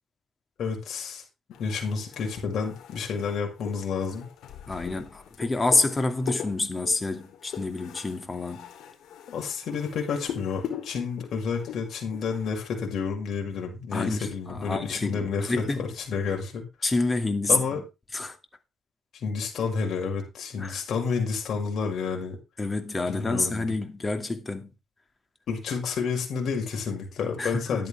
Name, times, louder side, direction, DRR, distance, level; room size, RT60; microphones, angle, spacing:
voice 1, 0.6-1.2 1.6-4.3 9.3-16.6 17.5-17.8 19.2-22.4 23.1-23.7 25.5-27.9, left 5 dB, 65° left, 6.3 m, -30 dB
sound 1, 1.5-12.8, left 9 dB, 80° left, 4.1 m, -42 dB
voice 2, 4.7-8.7 13.9-15.9 16.8-17.8 18.1-18.4 20.6-20.8 22.6-24.7 27.4-27.8, left 3 dB, 25° left, 2.5 m, -28 dB
13.5 x 10.5 x 3.6 m
cardioid pair, 90°, 0 cm